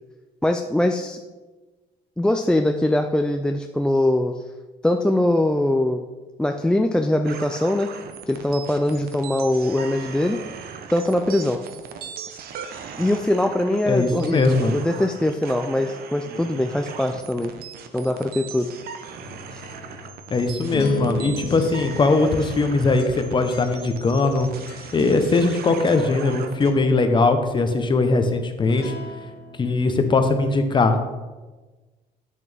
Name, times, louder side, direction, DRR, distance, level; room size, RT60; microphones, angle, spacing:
voice 1, 0.4-1.2 2.2-4.4 4.8-6.0 6.4-7.9 8.3-10.4 10.9-11.6 13.0-17.5 17.9-18.7 19.5-19.6, left 1 dB, 5° left, 4 dB, 0.4 m, -22 dB
sound 1, 7.2-26.7, right 7 dB, 65° right, 0.8 m, -39 dB
voice 2, 13.9-14.8 20.3-24.5 24.9-28.9 29.6-31.0, left 3 dB, 30° left, 7 dB, 0.9 m, -20 dB
sound 2, 19.2-25.6 25.9-26.3 28.6-29.6, left 4 dB, 65° left, 1.1 m, -36 dB
8.5 x 6.8 x 3.4 m, 1.2 s
cardioid pair, 110°, 17 cm